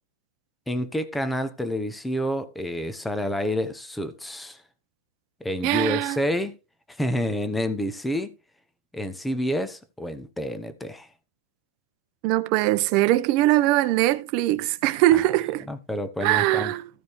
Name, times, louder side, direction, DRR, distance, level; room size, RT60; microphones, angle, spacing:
voice 1, 0.7-4.6 5.4-6.6 6.9-8.3 8.9-11.1 15.1-15.3 15.6-16.7, equal, 5° left, 1.0 m, -29 dB
voice 2, 5.6-6.2 12.2-15.7 16.2-16.8, right 16 dB, 35° right, 1.0 m, -21 dB
14.5 x 5.1 x 4.7 m
hypercardioid pair, 155°, 0 cm